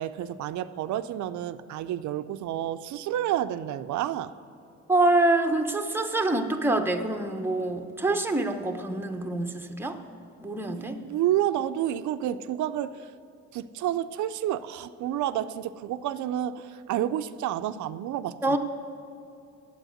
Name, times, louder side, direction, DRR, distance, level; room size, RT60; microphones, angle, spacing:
voice 1, 0.0-4.3 10.8-13.1 13.5-18.6, right 11 dB, 75° right, 13 dB, 0.5 m, -30 dB
voice 2, 4.9-10.0 10.4-11.0 18.4-18.6, right 2 dB, 5° right, 5 dB, 0.9 m, -25 dB
9.1 x 8.2 x 6.5 m, 2.6 s
cardioid pair, 90°, 30 cm